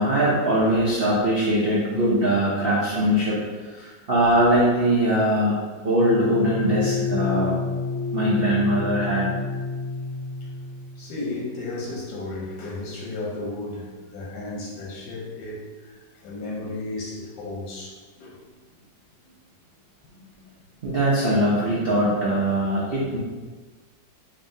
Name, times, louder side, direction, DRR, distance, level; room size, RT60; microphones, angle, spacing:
voice 1, 0.0-3.4 3.6-7.6 8.1-9.3 20.8-23.2, right 1 dB, 85° right, -7 dB, 0.5 m, -21 dB
sound 1, 6.0-11.2, left 5 dB, 60° left, 1.1 m, -28 dB
voice 2, 11.0-18.5 19.2-19.3, left 2 dB, 85° left, -3 dB, 1.5 m, -34 dB
5.2 x 2.7 x 2.6 m, 1.4 s
omnidirectional pair, 2.0 m